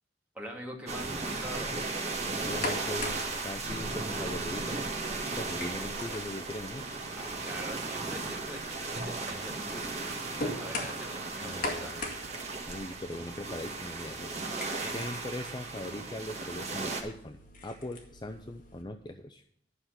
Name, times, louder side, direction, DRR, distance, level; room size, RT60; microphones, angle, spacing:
voice 1, 0.3-1.7 7.1-11.9 14.5-15.2, equal, 10° right, -2 dB, 2.5 m, -44 dB
sound 1, 0.9-17.0, right 3 dB, 40° right, 1.7 m, -36 dB
breaking eggs, 2.3-18.8, left 2 dB, 50° left, 2.0 m, -43 dB
voice 2, 2.4-4.8 5.3-6.9 11.4-12.0 12.7-14.4 14.9-19.4, left 1 dB, 25° left, 6 dB, 0.5 m, -40 dB
sound 2, 6.2-12.4, right 3 dB, 80° right, 0.7 m, -50 dB
11.5 x 5.8 x 8.0 m, 0.71 s
head